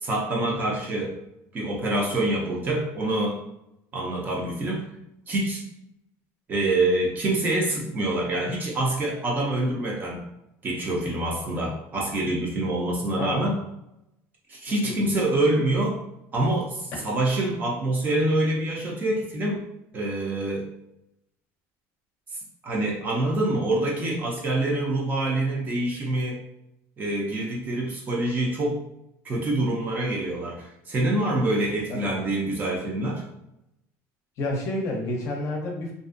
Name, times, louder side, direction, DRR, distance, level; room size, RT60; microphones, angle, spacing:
voice 1, 0.0-1.2 1.5-3.4 3.9-4.8 5.3-5.6 6.5-10.2 10.6-13.6 14.5-16.0 16.3-19.7 19.9-20.7 22.6-26.4 27.0-28.8 29.2-33.2, right 1 dB, 25° right, -2 dB, 0.5 m, -26 dB
voice 2, 13.2-13.5 14.8-15.1 31.9-32.2 34.4-35.9, left 1 dB, 45° left, 0 dB, 0.6 m, -30 dB
2.5 x 2.3 x 2.4 m, 0.84 s
cardioid pair, 155°, 7 cm